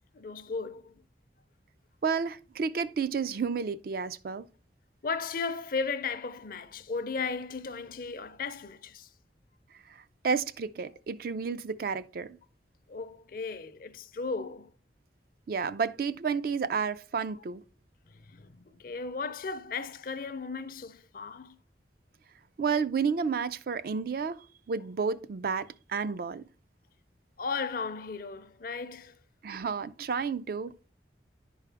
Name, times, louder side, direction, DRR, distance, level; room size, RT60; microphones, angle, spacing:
voice 1, 0.1-1.0 5.0-9.1 12.9-14.7 18.1-21.6 27.4-29.2, left 4 dB, 50° left, 0.5 m, -36 dB
voice 2, 2.0-4.4 10.2-12.4 15.5-17.6 22.6-26.4 29.4-30.7, right 5 dB, 55° right, 0.4 m, -31 dB
10.5 x 4.8 x 3.4 m
head